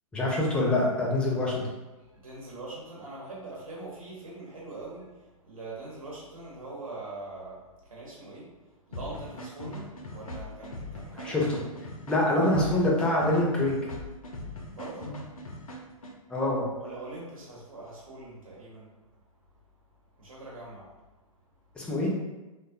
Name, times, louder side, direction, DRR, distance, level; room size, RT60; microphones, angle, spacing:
voice 1, 0.1-1.7 11.2-11.6 12.1-13.8 16.3-16.7 21.8-22.1, left 1 dB, 5° left, -3 dB, 0.4 m, -25 dB
voice 2, 2.0-11.5 14.7-15.2 16.8-18.9 20.2-21.0, right 2 dB, 70° right, -5 dB, 0.9 m, -43 dB
sound 1, 8.9-16.1, left 1 dB, 70° left, 0.5 m, -40 dB
3.3 x 2.2 x 2.5 m, 1.1 s
figure-of-eight pair, 115°, 19 cm